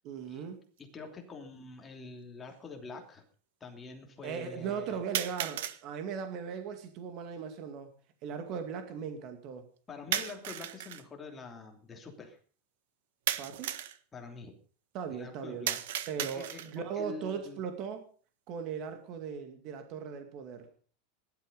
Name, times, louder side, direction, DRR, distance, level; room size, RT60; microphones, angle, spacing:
voice 1, 0.0-0.6 4.2-7.9 8.2-9.7 13.4-13.7 14.9-15.7 16.1-18.1 18.5-20.7, right 7 dB, 40° right, 6 dB, 2.3 m, -38 dB
voice 2, 0.8-3.2 3.6-5.0 9.9-12.4 14.1-14.6 15.1-15.8 16.2-17.6, left 4 dB, 15° left, 3 dB, 3.0 m, -46 dB
sound 1, 0.8-0.9 1.9-2.0 5.1-5.8 10.1-11.0 13.3-14.0 15.7-16.8, right 12 dB, 80° right, 1.5 m, -35 dB
18.0 x 12.0 x 5.3 m, 0.41 s
supercardioid pair, 165°, 0 cm